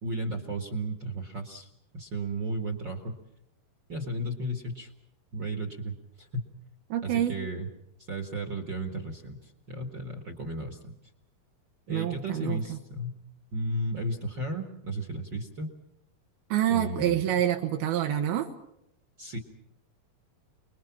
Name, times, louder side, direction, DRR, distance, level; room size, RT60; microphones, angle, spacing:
voice 1, 0.0-1.7 1.9-3.2 3.9-4.9 5.3-6.4 7.0-7.7 8.0-10.9 11.9-13.2 13.5-15.7 16.7-17.3 19.2-19.4, right 1 dB, 40° right, 6 dB, 1.7 m, -34 dB
voice 2, 6.9-7.4 11.9-12.8 16.5-18.5, right 11 dB, 85° right, 4 dB, 3.1 m, -27 dB
29.0 x 21.0 x 5.9 m, 0.82 s
omnidirectional pair, 4.3 m